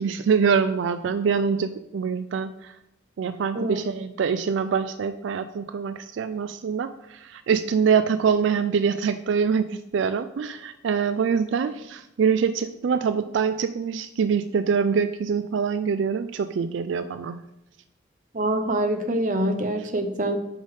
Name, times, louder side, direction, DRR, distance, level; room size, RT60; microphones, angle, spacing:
voice 1, 0.0-2.7 3.2-17.4, right 6 dB, 80° right, 11 dB, 0.3 m, -24 dB
voice 2, 18.3-20.4, right 1 dB, 45° right, 6 dB, 0.7 m, -25 dB
8.8 x 5.3 x 3.6 m, 0.85 s
head